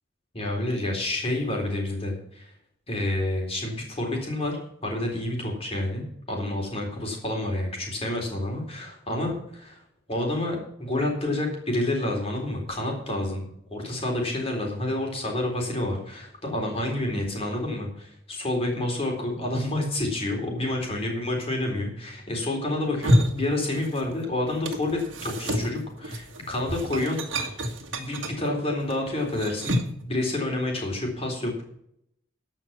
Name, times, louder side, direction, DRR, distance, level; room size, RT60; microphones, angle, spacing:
voice 1, 0.3-2.5 2.9-9.8 10.1-27.6 28.0-31.6, left 1 dB, 30° left, 1 dB, 3.8 m, -29 dB
sound 1, 22.8-24.2 24.5-30.0, equal, 70° right, 1.7 m, -28 dB
13.5 x 5.8 x 7.2 m, 0.71 s
head